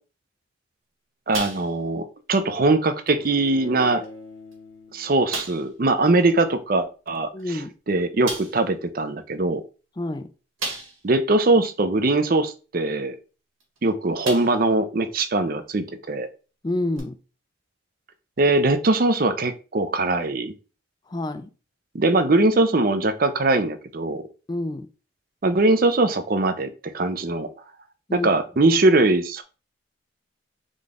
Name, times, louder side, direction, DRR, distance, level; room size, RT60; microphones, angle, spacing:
voice 1, 1.3-4.1 4.9-7.3 7.9-9.6 11.0-13.2 13.8-16.3 18.4-20.5 21.9-24.2 25.4-27.5 28.1-29.4, right 2 dB, 45° right, 0.5 m, -21 dB
sound 1, 1.3-2.0 2.3-2.5 3.1-3.2 4.0-4.1 4.5-4.6 5.3-5.7 7.4-7.5 8.2-8.6 10.6-11.2 11.7-11.8 13.6-13.8 14.2-14.7 15.2-15.3 16.9-17.0, right 3 dB, 85° right, 1.8 m, -33 dB
Bowed string instrument, 3.2-6.2, left 2 dB, 75° left, 1.3 m, -44 dB
voice 2, 7.3-7.7 10.0-10.3 16.6-17.2 21.1-21.5 24.5-24.9 28.1-28.3 28.6-28.8, left 1 dB, 20° left, 0.4 m, -28 dB
3.8 x 3.8 x 3.5 m
head